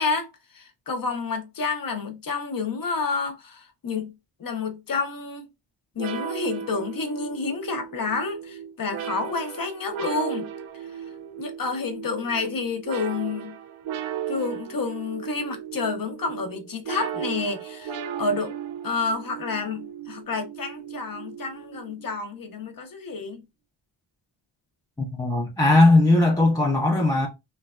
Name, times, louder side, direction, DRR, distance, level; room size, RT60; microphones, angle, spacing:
voice 1, 0.0-4.1 4.4-5.4 6.0-10.5 11.4-13.6 14.3-18.6 18.8-23.4, left 4 dB, 45° left, 0.6 m, -29 dB
sound 1, 6.0-22.2, right 9 dB, 90° right, 0.6 m, -36 dB
voice 2, 25.0-27.3, left 2 dB, 10° left, 0.4 m, -19 dB
3.1 x 2.1 x 2.3 m
wide cardioid pair, 115°, 47 cm